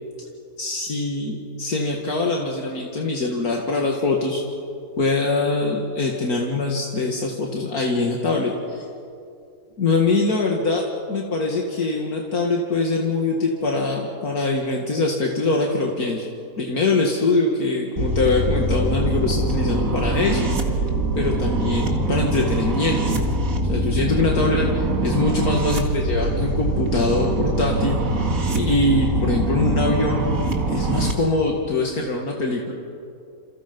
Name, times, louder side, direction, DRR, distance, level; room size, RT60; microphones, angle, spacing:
voice 1, 0.6-4.4 5.0-8.8 9.8-16.3 16.6-20.5 21.2-23.2 23.7-24.7 25.0-28.0 28.5-30.2 30.7-32.7, left 3 dB, 70° left, 0 dB, 2.5 m, -23 dB
sound 1, 18.0-31.1, right 2 dB, 60° right, 2.5 m, -23 dB
29.0 x 28.0 x 5.4 m, 2.4 s
omnidirectional pair, 1.6 m